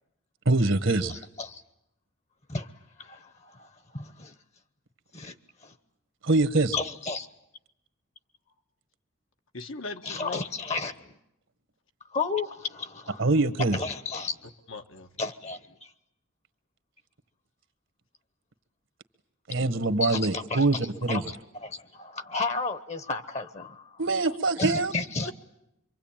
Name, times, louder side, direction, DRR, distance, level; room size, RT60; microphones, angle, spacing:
voice 1, 0.4-1.2 6.2-6.8 13.2-13.8 19.5-21.2 24.0-24.9, right 2 dB, 65° right, 10 dB, 1.4 m, -24 dB
voice 2, 1.1-1.6 2.5-2.7 3.0-4.3 5.1-5.3 5.6-5.7 6.7-7.3 10.1-11.1 12.1-13.3 13.7-14.4 15.2-15.9 20.0-20.6 21.1-24.0 24.6-25.3, left 3 dB, 30° left, 12 dB, 1.0 m, -33 dB
voice 3, 9.5-10.4 14.7-15.1 24.2-24.4 25.2-25.3, left 3 dB, 75° left, 6 dB, 1.4 m, -38 dB
26.0 x 24.0 x 8.9 m, 0.85 s
head